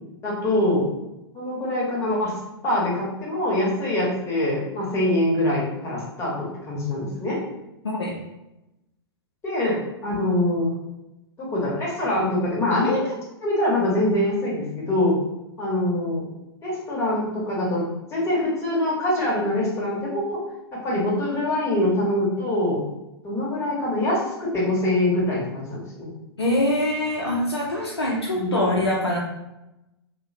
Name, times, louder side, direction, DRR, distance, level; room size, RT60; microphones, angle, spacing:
voice 1, 0.2-0.9 1.3-2.3 2.6-7.4 9.4-10.7 11.4-13.1 13.4-15.1 15.6-16.3 16.6-17.9 18.1-20.4 20.7-22.8 23.2-26.1 28.3-28.5, left 1 dB, 20° left, -5 dB, 0.9 m, -24 dB
voice 2, 7.8-8.2 26.4-29.2, left 1 dB, 85° left, -3 dB, 0.4 m, -24 dB
2.5 x 2.1 x 2.5 m, 0.94 s
figure-of-eight pair, 105°, 13 cm